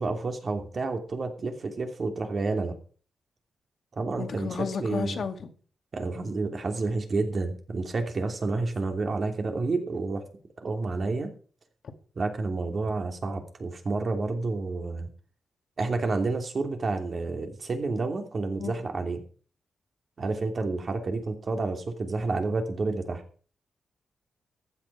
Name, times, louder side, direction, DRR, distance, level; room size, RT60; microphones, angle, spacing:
voice 1, 0.0-2.7 3.9-5.2 5.9-10.2 10.6-11.3 12.2-15.1 15.8-19.2 20.2-23.2, right 3 dB, 45° right, 4 dB, 2.9 m, -30 dB
voice 2, 4.2-5.5 18.6-18.7, left 6 dB, 60° left, 7 dB, 2.1 m, -32 dB
14.5 x 9.9 x 4.8 m, 0.41 s
cardioid pair, 105°, 0 cm